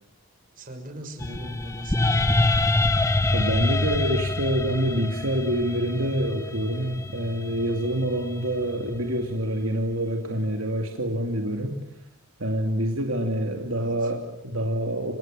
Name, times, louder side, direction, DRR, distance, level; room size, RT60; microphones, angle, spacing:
voice 1, 0.5-2.5 13.7-14.1, equal, 40° right, 4 dB, 6.2 m, -42 dB
sound 1, 1.2-9.3, left 2 dB, 15° left, 1.0 m, -26 dB
voice 2, 3.3-11.7 12.4-15.2, right 1 dB, 70° right, 3 dB, 2.7 m, -26 dB
29.5 x 26.0 x 7.6 m, 0.82 s
head